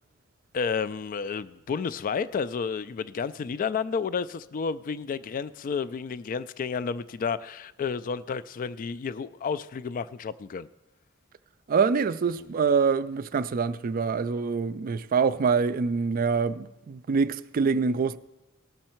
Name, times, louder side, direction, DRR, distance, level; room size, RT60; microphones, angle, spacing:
voice 1, 0.5-10.7 12.4-12.5, left 5 dB, 40° left, 0.3 m, -31 dB
voice 2, 11.7-18.2, right 5 dB, 40° right, 0.3 m, -25 dB
18.0 x 6.4 x 4.4 m
head